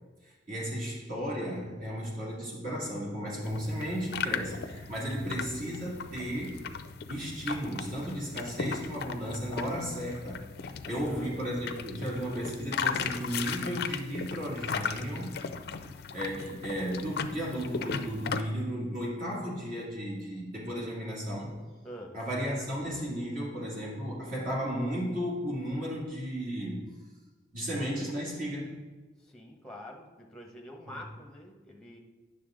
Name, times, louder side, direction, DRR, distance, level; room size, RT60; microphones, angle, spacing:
voice 1, 0.2-6.6 7.1-10.4 10.9-15.3 16.1-21.6 22.1-26.9 27.5-28.8 30.9-31.0, equal, 45° right, -5 dB, 2.5 m, -34 dB
sound 1, 3.4-18.4, left 6 dB, 55° left, 0.4 m, -37 dB
voice 2, 10.8-11.3 21.8-22.2 29.2-32.0, equal, 5° left, 1 dB, 1.0 m, -46 dB
9.4 x 6.7 x 3.8 m, 1.3 s
head